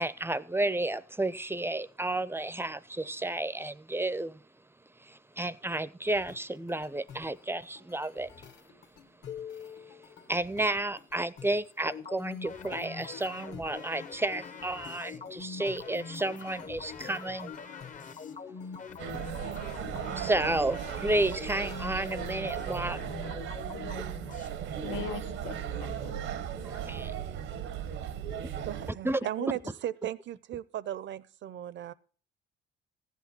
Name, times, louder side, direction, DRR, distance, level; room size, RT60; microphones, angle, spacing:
voice 1, 0.0-4.4 5.0-8.5 9.7-17.5 20.1-23.0 26.6-27.1 29.0-29.2, right 1 dB, 10° right, 0.4 m, -32 dB
sound 1, 6.1-22.2, left 8 dB, 60° left, 1.2 m, -50 dB
sound 2, 11.9-24.5, left 5 dB, 40° left, 0.7 m, -43 dB
sound 3, 19.0-28.9, right 9 dB, 90° right, 1.0 m, -36 dB
voice 2, 24.8-26.2, left 10 dB, 80° left, 0.6 m, -41 dB
voice 3, 28.6-31.9, right 12 dB, 65° right, 0.6 m, -36 dB
14.5 x 8.4 x 4.2 m
cardioid pair, 90°, 20 cm